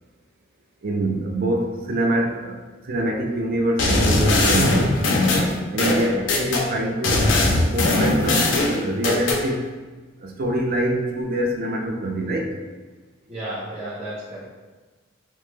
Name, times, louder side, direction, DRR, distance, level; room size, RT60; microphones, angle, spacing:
voice 1, 0.8-5.3 5.7-7.3 7.7-9.7 10.2-12.5, right 1 dB, 50° right, 2 dB, 0.4 m, -25 dB
sound 1, 3.8-6.6 7.0-9.4, left 2 dB, 65° left, 0.5 m, -20 dB
voice 2, 5.7-6.5 13.3-14.4, right 1 dB, 35° right, -14 dB, 1.1 m, -33 dB
3.1 x 2.1 x 3.2 m, 1.3 s
head